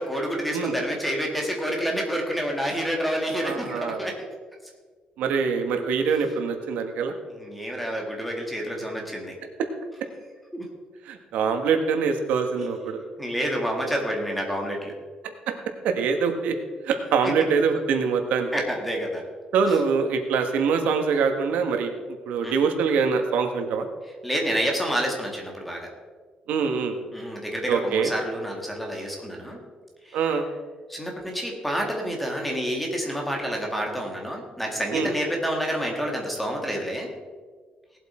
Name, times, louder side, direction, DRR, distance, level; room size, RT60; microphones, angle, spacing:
voice 1, 0.0-4.2 7.3-9.4 10.5-10.7 13.2-14.9 17.2-17.3 18.5-19.2 19.7-19.8 22.4-22.5 24.2-25.9 27.1-29.6 30.0-30.2 30.9-37.1, equal, ahead, 0 dB, 2.1 m, -28 dB
voice 2, 3.4-4.0 5.2-7.1 11.1-13.0 15.5-15.6 15.8-16.5 16.8-18.5 19.5-21.9 22.3-23.8 26.5-26.9 27.7-28.1 30.1-30.5 34.9-35.1, right 5 dB, 85° right, 5 dB, 1.5 m, -24 dB
18.0 x 8.0 x 4.4 m, 1.5 s
cardioid pair, 170°, 2 cm